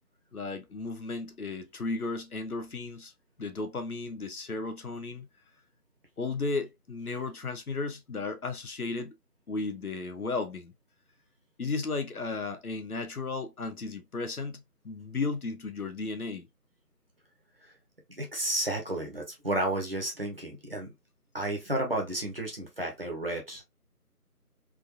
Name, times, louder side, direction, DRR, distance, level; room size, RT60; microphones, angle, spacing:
voice 1, 0.3-3.1 3.4-5.3 6.2-9.1 9.5-10.7 11.6-16.5, left 3 dB, 70° left, 0.9 m, -34 dB
voice 2, 18.1-20.9 21.3-23.6, right 1 dB, 40° right, 1.0 m, -32 dB
3.6 x 2.5 x 2.5 m
figure-of-eight pair, 170°, 46 cm